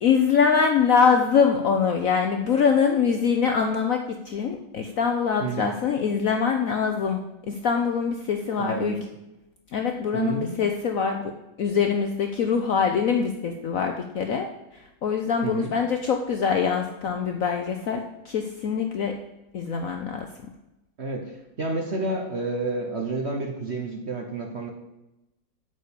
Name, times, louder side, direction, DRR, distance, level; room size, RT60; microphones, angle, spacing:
voice 1, 0.0-4.0 4.3-7.2 7.5-9.0 9.7-11.2 11.6-14.5 14.7-19.2 19.5-20.3, left 6 dB, 65° left, 4 dB, 0.9 m, -23 dB
voice 2, 5.4-5.8 8.6-9.0 10.1-10.6 15.4-15.7 21.0-24.7, right 3 dB, 45° right, 3 dB, 1.0 m, -30 dB
8.7 x 5.1 x 7.0 m, 0.94 s
omnidirectional pair, 2.1 m